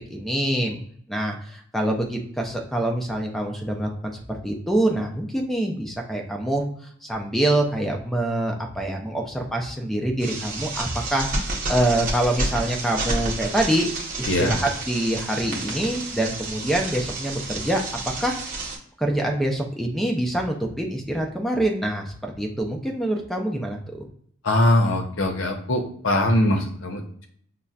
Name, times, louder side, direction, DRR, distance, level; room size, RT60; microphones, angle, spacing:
voice 1, 0.1-0.8 1.1-6.7 7.0-11.3 11.7-13.9 14.2-18.3 19.0-24.1, right 1 dB, ahead, 2 dB, 0.5 m, -25 dB
sound 1, 10.2-18.8, right 2 dB, 40° right, 0.8 m, -30 dB
voice 2, 24.4-27.3, left 1 dB, 75° left, 4 dB, 0.7 m, -22 dB
5.4 x 2.1 x 2.4 m, 0.62 s
head